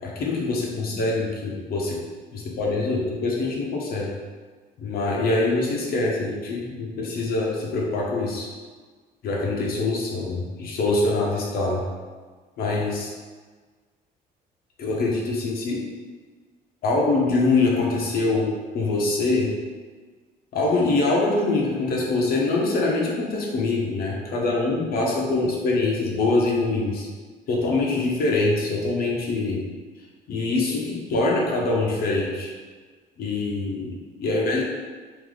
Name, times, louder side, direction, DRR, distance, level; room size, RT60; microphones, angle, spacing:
voice 1, 0.0-2.0 2.3-4.1 4.8-8.5 9.2-11.8 12.6-13.1 14.8-15.8 16.8-19.5 20.5-27.1 27.5-29.6 30.3-32.5 33.2-34.6, left 3 dB, 65° left, -3 dB, 0.9 m, -24 dB
3.2 x 2.7 x 3.9 m, 1.4 s
cardioid pair, 110°, 17 cm